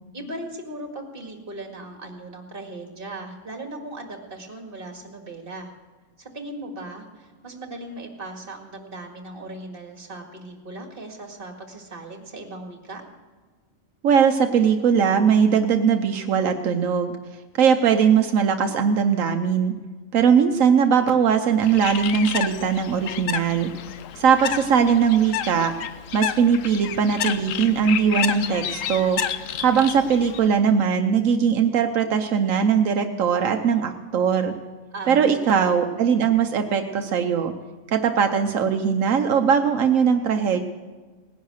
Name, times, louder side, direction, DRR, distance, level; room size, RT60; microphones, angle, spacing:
voice 1, 0.1-5.7 6.2-13.0 34.9-35.7, right 2 dB, 45° right, 3 dB, 2.2 m, -38 dB
voice 2, 14.0-17.2 17.6-19.7 20.1-23.7 24.2-25.7 26.1-29.2 29.6-34.5 35.1-37.5 37.9-40.6, right 7 dB, 85° right, 6 dB, 1.2 m, -20 dB
Bird, 21.6-30.5, left 10 dB, 80° left, 1.1 m, -31 dB
18.5 x 10.5 x 6.5 m, 1.4 s
omnidirectional pair, 1.3 m